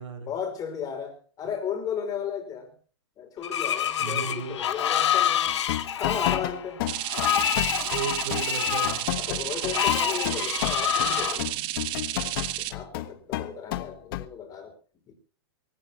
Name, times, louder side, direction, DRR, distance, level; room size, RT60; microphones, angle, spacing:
voice 1, 0.3-2.7 3.2-5.5 5.9-6.8 9.1-11.7 12.6-14.7 15.1-15.2, left 7 dB, 25° left, 5 dB, 5.0 m, -35 dB
Screech, 3.4-11.4, left 10 dB, 75° left, 2.1 m, -27 dB
voice 2, 4.0-4.6 7.9-9.0, right 5 dB, 85° right, 7 dB, 5.7 m, -34 dB
sound 1, 5.5-14.3, left 15 dB, 50° left, 1.3 m, -32 dB
sound 2, 6.9-12.7, right 17 dB, 35° right, 1.1 m, -32 dB
23.5 x 17.0 x 2.9 m, 0.39 s
hypercardioid pair, 140°, 15 cm